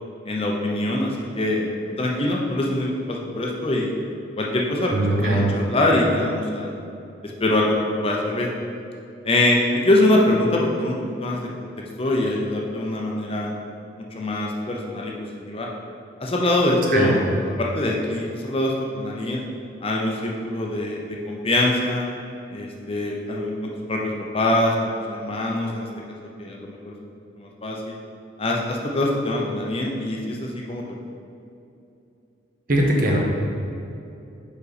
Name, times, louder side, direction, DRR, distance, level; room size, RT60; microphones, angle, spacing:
voice 1, 0.3-1.7 2.0-3.9 4.4-6.7 7.2-8.5 9.2-11.7 12.0-13.5 14.0-15.1 15.5-15.7 16.2-17.2 17.6-19.4 19.8-22.1 22.5-25.9 26.4-26.9 27.4-28.0 28.4-30.8, left 1 dB, 30° left, -1 dB, 0.6 m, -23 dB
voice 2, 4.9-5.5 16.9-17.2 32.7-33.2, right 1 dB, 45° right, -1 dB, 0.9 m, -20 dB
5.4 x 5.2 x 4.1 m, 2.7 s
head